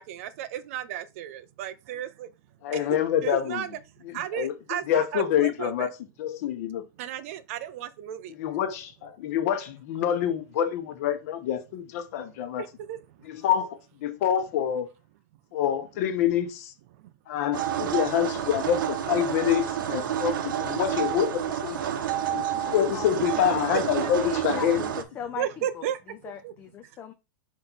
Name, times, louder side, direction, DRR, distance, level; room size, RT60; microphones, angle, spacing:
voice 1, 0.0-2.3 2.7-2.8 3.2-3.7 4.1-5.9 7.0-8.3 12.6-13.0 17.0-17.1 24.5-24.6 25.4-26.0 26.4-26.5, right 11 dB, 40° right, 0.5 m, -34 dB
voice 2, 2.6-3.7 4.0-4.6 4.9-5.9 6.2-6.8 8.4-12.6 13.2-14.9 15.5-16.7 17.3-21.8 22.3-24.8, left 10 dB, 45° left, 1.0 m, -26 dB
sound 1, 17.5-25.0, right 10 dB, 70° right, 1.0 m, -29 dB
voice 3, 21.7-23.3 23.5-23.7 24.0-27.1, left 9 dB, 15° left, 0.4 m, -41 dB
5.1 x 4.5 x 4.1 m
supercardioid pair, 165°, 11 cm